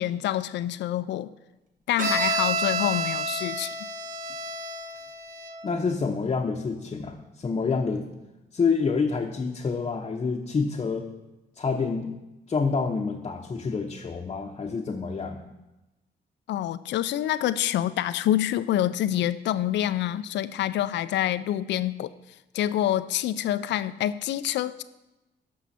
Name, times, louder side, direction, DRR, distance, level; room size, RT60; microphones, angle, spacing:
voice 1, 0.0-1.3 1.9-3.7 16.5-22.1 22.5-24.8, left 12 dB, 85° left, 15 dB, 0.4 m, -26 dB
Bowed string instrument, 2.0-5.7, right 2 dB, 50° right, 1.2 m, -29 dB
voice 2, 5.6-8.1 8.5-11.1 11.6-12.1 12.5-15.4, left 5 dB, 30° left, -1 dB, 0.8 m, -27 dB
13.5 x 5.6 x 4.2 m, 1.0 s
cardioid pair, 110°, 18 cm